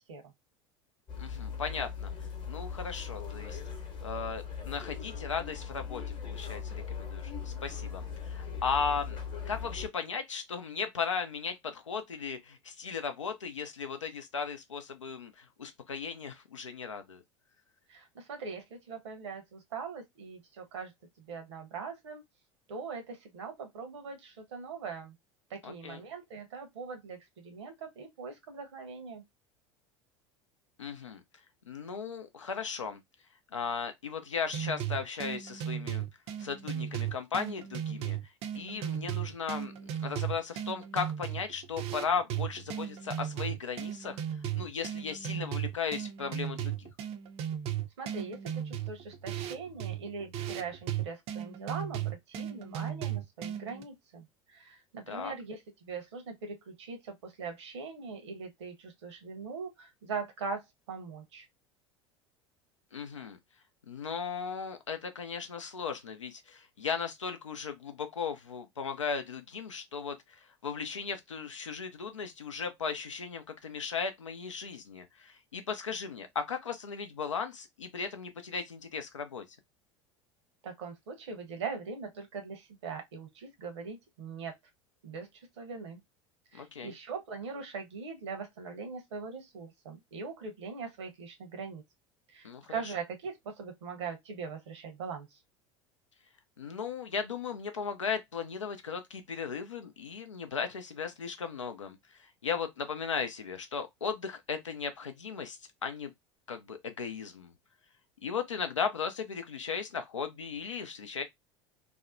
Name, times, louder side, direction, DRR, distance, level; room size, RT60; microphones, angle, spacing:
sound 1, 1.1-9.9, left 6 dB, 35° left, 0.9 m, -39 dB
voice 1, 1.2-2.1 2.5-3.6 4.0-9.2 9.4-17.2 25.6-26.0 30.8-31.2 31.7-33.0 33.5-36.1 36.4-39.7 40.0-44.2 44.5-46.9 55.1-55.3 62.9-63.4 63.9-79.4 86.5-86.9 92.4-92.9 96.6-106.1 106.5-107.5 108.2-111.2, left 6 dB, 80° left, 0.5 m, -36 dB
voice 2, 17.9-20.9 21.2-22.2 22.7-25.1 25.5-29.2 48.0-61.5 80.6-84.5 85.0-86.0 86.5-91.8 92.3-95.4, right 5 dB, 65° right, 0.8 m, -41 dB
sound 2, 34.5-53.8, right 10 dB, 40° right, 0.4 m, -36 dB
2.7 x 2.1 x 2.4 m
figure-of-eight pair, 75°, 16 cm